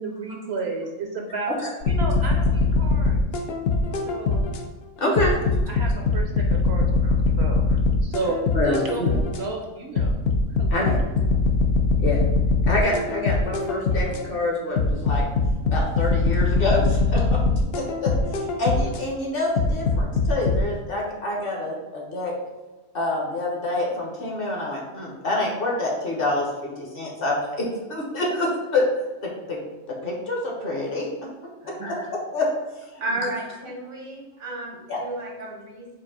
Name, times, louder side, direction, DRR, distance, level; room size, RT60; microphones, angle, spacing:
voice 1, 0.0-1.5 1.8-3.2 4.0-4.5 5.7-10.2 10.6-10.8, right 3 dB, 60° right, 1 dB, 0.8 m, -32 dB
sound 1, 1.8-4.6 5.2-9.4 10.0-14.2 14.8-19.0 19.6-20.6, left 3 dB, 60° left, 0.7 m, -22 dB
voice 2, 5.0-5.4 8.5-9.1 10.7-11.0 12.0-12.2 12.7-15.2 15.7-17.4 17.7-22.3 22.9-28.9 29.2-29.6 29.9-31.1 31.6-32.0 32.3-32.5 34.9-35.0, left 2 dB, 45° left, -2 dB, 1.1 m, -26 dB
voice 3, 31.6-31.9 33.0-35.9, right 2 dB, 85° right, -1 dB, 1.5 m, -33 dB
4.6 x 2.8 x 4.1 m, 1.2 s
omnidirectional pair, 1.4 m